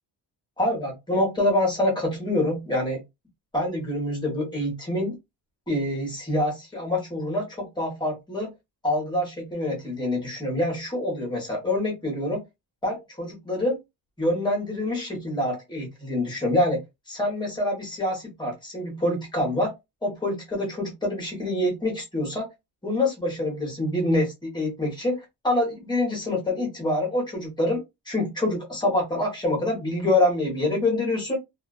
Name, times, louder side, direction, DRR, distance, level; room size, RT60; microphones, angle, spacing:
voice 1, 0.6-3.0 3.5-5.2 5.7-8.5 8.8-12.4 12.8-13.8 14.2-16.8 17.1-19.7 20.0-22.4 22.8-31.4, left 1 dB, 10° left, 0.9 m, -26 dB
2.4 x 2.3 x 2.2 m
wide cardioid pair, 160°, 43 cm